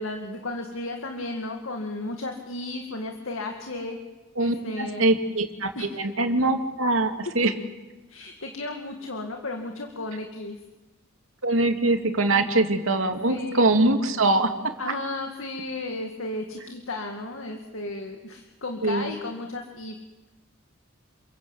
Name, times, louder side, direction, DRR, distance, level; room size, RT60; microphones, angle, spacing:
voice 1, 0.0-4.0 4.4-5.1 5.8-5.9 7.4-7.5 8.1-10.6 12.3-12.5 13.3-13.7 14.8-20.0, left 2 dB, 85° left, 3 dB, 2.2 m, -34 dB
voice 2, 4.4-7.5 11.4-14.5 18.8-19.1, right 2 dB, 85° right, 5 dB, 2.6 m, -23 dB
29.0 x 22.5 x 8.2 m, 1.1 s
head